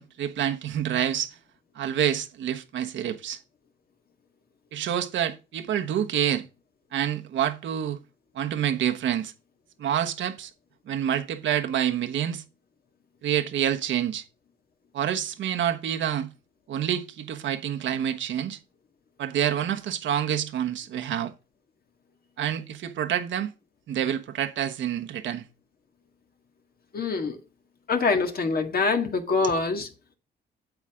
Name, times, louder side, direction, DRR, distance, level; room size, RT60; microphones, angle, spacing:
voice 1, 0.0-1.4 1.7-3.4 4.7-6.5 6.9-8.0 8.3-9.3 9.8-10.5 10.9-12.4 13.2-14.2 14.9-16.3 16.7-18.6 19.2-21.3 22.4-23.5 23.9-25.4 29.3-29.4, right 10 dB, 70° right, 1.2 m, -27 dB
voice 2, 26.9-27.4 27.9-29.9, left 4 dB, 50° left, 1.9 m, -24 dB
8.2 x 8.1 x 3.7 m
cardioid pair, 90°, 20 cm